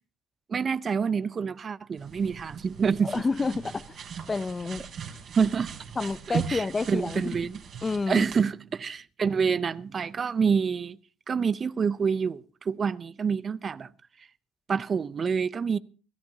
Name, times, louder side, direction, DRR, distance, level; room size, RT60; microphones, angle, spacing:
voice 1, 0.5-3.2 5.4-5.7 6.3-7.6 8.1-11.0 11.3-13.9 14.7-15.8, right 6 dB, 40° right, 0.6 m, -27 dB
sound 1, 2.0-8.4, right 7 dB, 55° right, 3.6 m, -39 dB
voice 2, 3.0-4.0 4.3-4.8 6.0-7.3 7.8-8.2, left 4 dB, 25° left, 0.6 m, -29 dB
24.5 x 14.0 x 2.8 m
hypercardioid pair, 65°, 0 cm